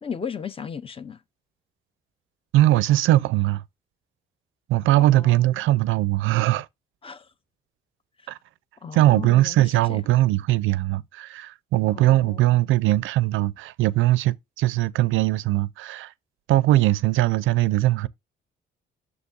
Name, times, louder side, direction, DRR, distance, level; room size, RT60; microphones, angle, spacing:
voice 1, 0.0-1.2 5.0-5.6 7.0-7.3 8.2-8.3 8.8-9.6 9.9-10.0 11.9-12.7, left 7 dB, 30° left, 0.5 m, -36 dB
voice 2, 2.5-3.6 4.7-6.7 8.3-8.4 8.9-16.1 16.5-18.1, right 15 dB, 80° right, 0.4 m, -20 dB
6.9 x 6.7 x 2.3 m
cardioid pair, 90°, 20 cm